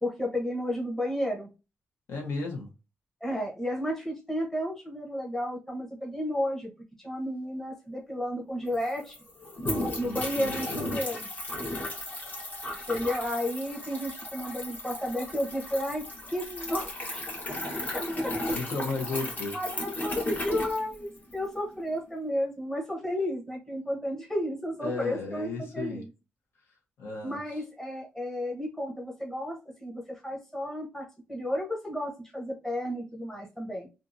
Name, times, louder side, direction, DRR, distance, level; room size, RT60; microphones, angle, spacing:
voice 1, 0.0-1.5 3.2-6.7 7.0-9.2 10.0-11.3 12.9-16.0 16.3-17.2 17.9-18.0 19.5-26.1 27.2-33.9, left 1 dB, 10° left, -1 dB, 0.8 m, -32 dB
voice 2, 2.1-2.7 9.7-11.0 18.5-19.6 24.8-26.0 27.0-27.6, left 3 dB, 75° left, 0 dB, 1.0 m, -35 dB
sound 1, 8.4-8.5 8.7-21.5, left 1 dB, 40° left, 1.0 m, -35 dB
2.7 x 2.4 x 2.5 m, 0.29 s
wide cardioid pair, 130°, 4 cm